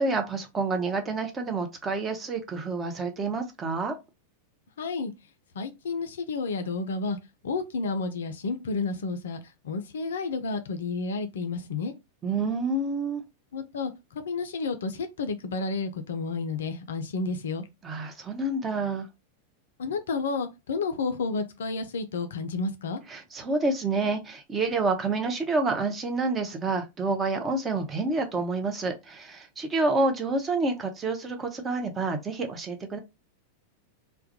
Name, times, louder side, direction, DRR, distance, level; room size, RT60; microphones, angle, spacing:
voice 1, 0.0-4.0 12.2-13.2 17.8-19.1 23.1-33.0, right 3 dB, 20° right, 0.6 m, -28 dB
voice 2, 4.8-5.1 5.6-7.2 7.4-11.9 13.5-17.6 19.8-23.0, left 4 dB, 65° left, 0.4 m, -31 dB
2.2 x 2.1 x 2.7 m
figure-of-eight pair, 90°, 0 cm